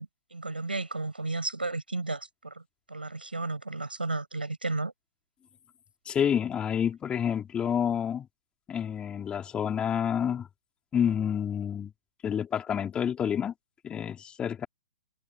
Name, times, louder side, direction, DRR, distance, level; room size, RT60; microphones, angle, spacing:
voice 1, 0.0-2.6 2.9-4.9, right 3 dB, 90° right, 6.5 m, -33 dB
voice 2, 6.0-8.3 8.7-10.5 10.9-11.9 12.2-13.5 13.8-14.7, left 8 dB, 20° left, 3.5 m, -28 dB
figure-of-eight pair, 115°, 5 cm